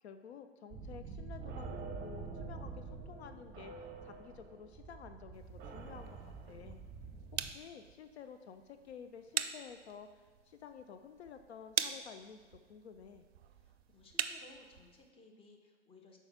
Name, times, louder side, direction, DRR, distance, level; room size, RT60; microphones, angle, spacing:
voice 1, 0.0-6.2 6.5-6.8 7.4-13.3, left 7 dB, 70° left, 8 dB, 0.5 m, -52 dB
sound 1, 0.7-7.5, right 4 dB, 30° right, 0.7 m, -46 dB
sound 2, 5.3-15.1, right 9 dB, 65° right, 0.4 m, -43 dB
voice 2, 13.6-16.2, left 2 dB, 15° left, 2 dB, 0.8 m, -60 dB
5.5 x 4.5 x 5.8 m, 1.4 s
figure-of-eight pair, 95°, 34 cm